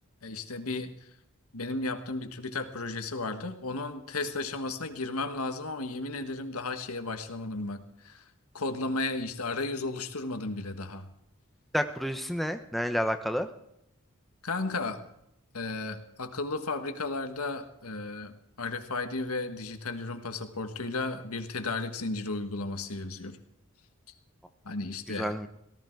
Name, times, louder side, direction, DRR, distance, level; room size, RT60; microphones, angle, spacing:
voice 1, 0.2-0.9 1.5-8.2 8.5-11.1 14.4-15.0 15.5-23.4 24.6-25.3, left 3 dB, 85° left, 8 dB, 1.5 m, -34 dB
voice 2, 11.7-13.5 25.1-25.5, equal, ahead, 7 dB, 0.7 m, -30 dB
18.0 x 14.0 x 4.6 m, 0.78 s
head